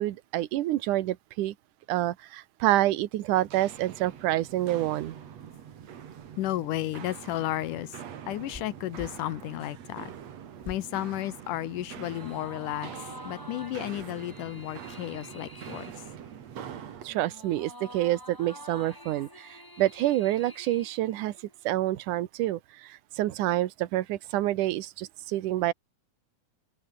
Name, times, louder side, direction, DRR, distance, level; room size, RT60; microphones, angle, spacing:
voice 1, 0.0-1.5 1.9-5.2 17.0-21.4 21.6-25.7, right 15 dB, 70° right, 2.5 m, -28 dB
Walk footsteps, 3.3-17.1, right 8 dB, 55° right, 2.9 m, -44 dB
voice 2, 6.4-8.0 8.3-10.1 10.7-12.9 13.3-15.9, left 14 dB, 75° left, 2.3 m, -33 dB
sound 1, 7.3-9.2 10.6-10.9 11.5-12.2, left 2 dB, 55° left, 0.4 m, -46 dB
sound 2, 11.9-21.6, left 1 dB, 5° left, 5.2 m, -48 dB
open air
omnidirectional pair, 4.0 m